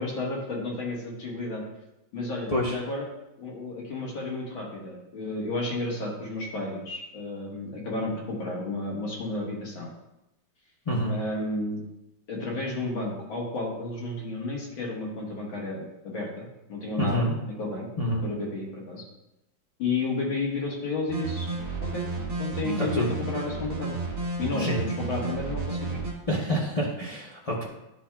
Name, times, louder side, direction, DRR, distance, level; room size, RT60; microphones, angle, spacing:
voice 1, 0.0-1.6 2.1-3.1 3.4-9.9 11.1-11.8 12.3-17.9 18.2-19.0 19.8-21.5 21.8-22.0 22.4-24.0 24.4-26.0, left 2 dB, 80° left, -3 dB, 2.3 m, -32 dB
voice 2, 10.9-11.2 17.0-17.3 18.0-18.2 22.8-23.1 24.6-24.8 26.3-27.7, equal, 45° left, -4 dB, 0.4 m, -27 dB
sound 1, 21.1-26.1, right 3 dB, 55° right, 2.2 m, -32 dB
9.9 x 5.9 x 2.3 m, 0.92 s
omnidirectional pair, 2.1 m